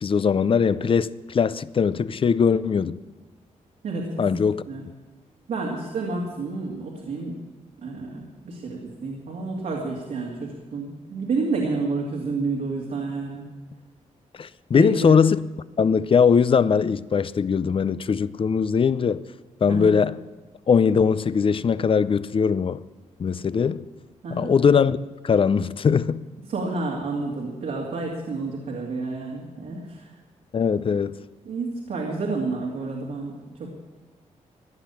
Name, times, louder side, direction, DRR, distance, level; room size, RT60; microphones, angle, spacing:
voice 1, 0.0-3.0 4.2-4.6 14.4-15.4 15.8-19.2 19.6-20.2 20.7-22.8 23.2-23.9 24.3-25.0 25.2-26.2 30.5-31.2, left 6 dB, 40° left, 0.5 m, -20 dB
voice 2, 3.8-4.8 5.5-7.3 7.8-13.4 14.7-15.1 19.7-19.9 24.2-24.5 26.5-30.1 31.4-33.3 33.6-33.7, right 3 dB, 80° right, 2.6 m, -30 dB
16.0 x 10.0 x 7.2 m
cardioid pair, 80°, 13 cm